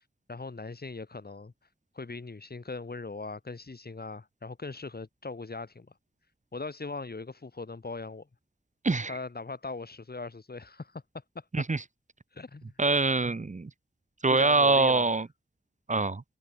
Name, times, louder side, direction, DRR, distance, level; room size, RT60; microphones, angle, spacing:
voice 1, 0.3-1.5 1.9-5.9 6.5-8.3 9.1-11.7 12.3-12.7 14.3-15.2, left 3 dB, 55° left, 4.1 m, -40 dB
voice 2, 12.8-13.7 14.2-15.3 15.9-16.2, right 3 dB, 40° right, 1.1 m, -24 dB
wide cardioid pair, 65°, 20 cm